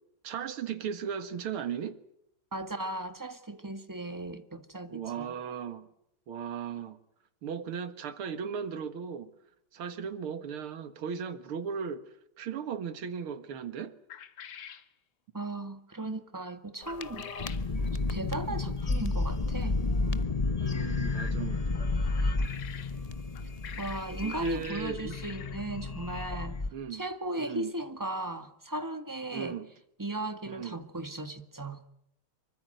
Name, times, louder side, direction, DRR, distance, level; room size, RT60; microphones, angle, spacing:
voice 1, 0.2-2.0 4.9-5.9 6.3-7.0 7.4-9.3 9.7-12.0 12.4-14.0 18.4-18.6 20.6-21.9 24.2-25.2 26.7-27.0 27.4-27.7 29.3-29.7 30.5-30.8, right 7 dB, 75° right, 2.5 m, -37 dB
voice 2, 2.5-5.3 15.3-17.3 18.1-19.8 23.8-26.6 26.9-29.6 30.0-31.8, right 2 dB, 10° right, 1.4 m, -36 dB
sound 1, 14.1-14.9 16.9-17.6 22.0-22.9 23.3-25.7, left 9 dB, 65° left, 2.1 m, -46 dB
sound 2, 16.8-26.7, left 3 dB, 40° left, 0.5 m, -31 dB
25.5 x 24.0 x 7.8 m
omnidirectional pair, 2.4 m